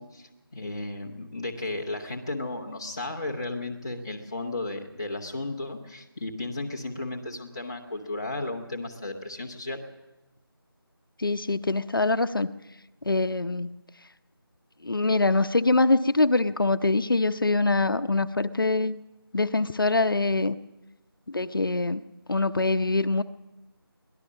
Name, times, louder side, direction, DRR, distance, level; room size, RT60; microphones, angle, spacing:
voice 1, 0.0-9.8, left 2 dB, 10° left, -2 dB, 0.9 m, -34 dB
voice 2, 11.2-12.5 13.1-13.7 14.8-19.0 19.3-20.6 21.3-22.0 22.3-23.2, left 3 dB, 60° left, 12 dB, 0.7 m, -24 dB
23.5 x 17.5 x 6.4 m, 1.0 s
figure-of-eight pair, 175°, 13 cm